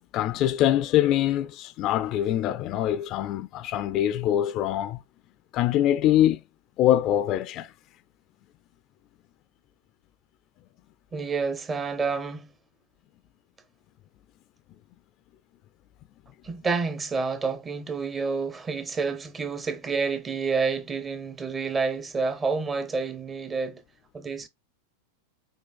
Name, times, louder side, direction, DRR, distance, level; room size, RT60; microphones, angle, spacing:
voice 1, 0.1-5.0 5.5-6.4 6.8-7.7, left 12 dB, 45° left, 0.4 m, -24 dB
voice 2, 11.1-12.5 16.4-23.8 24.1-24.5, right 4 dB, 20° right, 0.7 m, -29 dB
6.3 x 2.3 x 2.3 m
hypercardioid pair, 100°, 0 cm